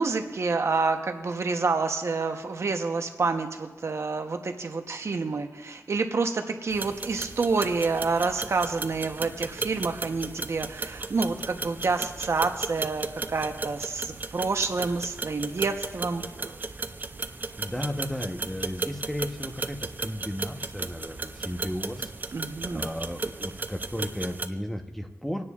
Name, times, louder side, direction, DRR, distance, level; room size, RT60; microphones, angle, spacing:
voice 1, 0.0-16.2 22.3-22.9, right 4 dB, 60° right, 6 dB, 0.8 m, -28 dB
sound 1, 6.7-24.5, right 3 dB, 35° right, 0.5 m, -35 dB
voice 2, 17.6-22.1 22.6-25.5, equal, 5° left, 5 dB, 0.9 m, -34 dB
25.0 x 9.7 x 2.4 m, 1.3 s
wide cardioid pair, 115°, 5 cm